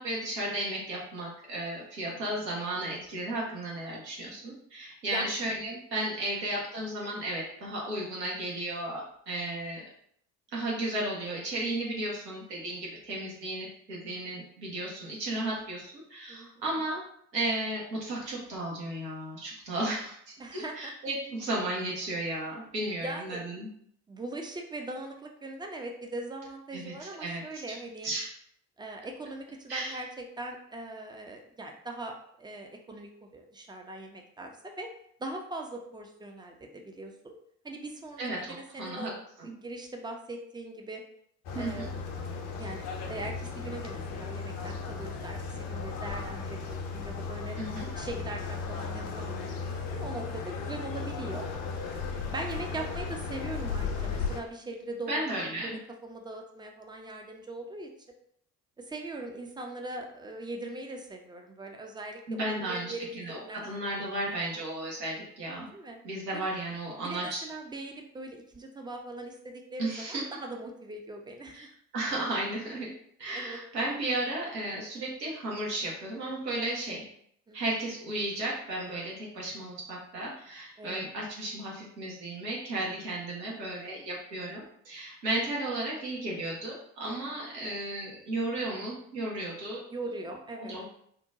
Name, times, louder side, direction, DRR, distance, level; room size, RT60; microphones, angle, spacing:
voice 1, 0.0-9.8 10.5-17.0 17.3-23.7 26.7-27.8 28.0-28.3 29.7-30.0 38.2-39.1 39.4-39.5 41.5-41.9 47.6-47.9 55.1-55.8 62.3-65.7 66.0-67.5 69.8-70.2 71.5-71.7 71.9-72.9 73.2-77.0 77.5-89.8 90.6-90.8, right 1 dB, 85° right, -3 dB, 0.9 m, -34 dB
voice 2, 20.4-20.9 23.0-23.4 24.1-28.1 28.8-34.9 35.2-37.4 37.6-39.1 39.4-41.0 41.6-41.9 42.5-42.8 43.1-47.6 47.9-51.5 52.1-57.9 58.8-64.0 65.7-66.0 66.3-66.5 67.0-71.7 73.3-73.6 77.5-77.6 80.8-81.1 87.2-87.3 89.9-90.7, right 2 dB, 10° right, 2 dB, 0.4 m, -41 dB
sound 1, 41.5-54.4, left 5 dB, 60° left, 0.7 m, -36 dB
2.8 x 2.1 x 3.6 m, 0.69 s
figure-of-eight pair, 50°, 48 cm